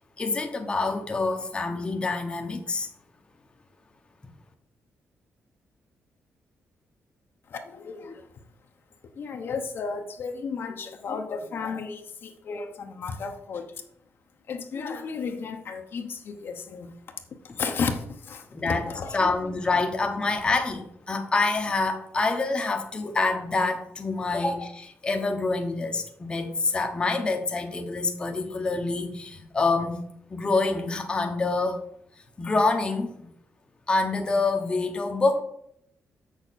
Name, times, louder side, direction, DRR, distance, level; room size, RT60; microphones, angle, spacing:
voice 1, 0.2-2.9 18.5-30.0 30.3-31.8 32.4-33.1 33.9-35.4, left 3 dB, 20° left, 0.9 m, -26 dB
voice 2, 7.5-8.3 9.2-13.7 14.5-16.9 17.6-19.3, left 5 dB, 50° left, 0.9 m, -33 dB
7.9 x 6.4 x 4.1 m
wide cardioid pair, 155°, 5 cm